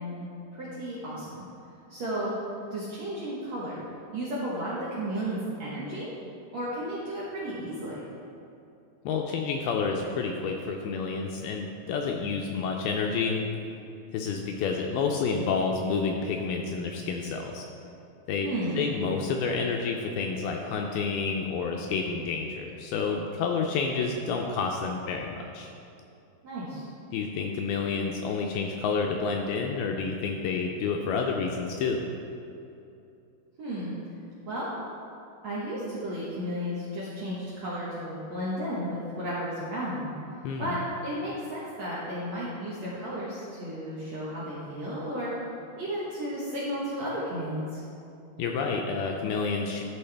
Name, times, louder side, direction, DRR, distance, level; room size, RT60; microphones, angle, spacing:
voice 1, 0.0-1.4 1.9-2.3 2.7-3.8 4.1-6.1 6.5-8.0 18.4-18.8 26.4-26.9 33.6-33.9 34.5-34.7 35.4-40.1 40.6-40.8 41.0-45.3 45.8-47.8, equal, 65° right, -8 dB, 1.7 m, -33 dB
voice 2, 9.1-13.5 14.1-17.7 18.3-18.5 18.8-25.7 27.1-32.0 40.4-40.8 48.4-49.8, left 5 dB, 80° left, 2 dB, 2.2 m, -29 dB
12.5 x 6.3 x 3.4 m, 2.7 s
omnidirectional pair, 4.8 m